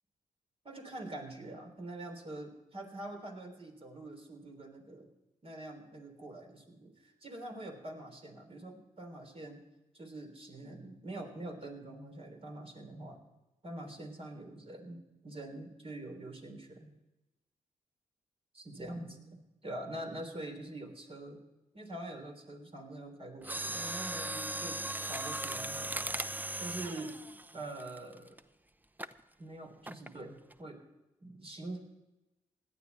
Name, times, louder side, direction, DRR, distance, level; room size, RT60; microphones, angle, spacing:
voice 1, 0.6-5.1 5.4-9.6 9.9-13.2 13.6-16.9 18.5-21.4 21.7-26.3 26.6-27.2 27.5-28.4 29.4-30.8 31.2-31.8, right 1 dB, 40° right, 3 dB, 3.4 m, -45 dB
Mechanisms, 23.4-28.4 29.0-29.2 29.9-30.2 30.5-30.6, right 1 dB, 10° right, 0.7 m, -38 dB
17.0 x 11.5 x 4.2 m, 1.0 s
supercardioid pair, 45°, 15 cm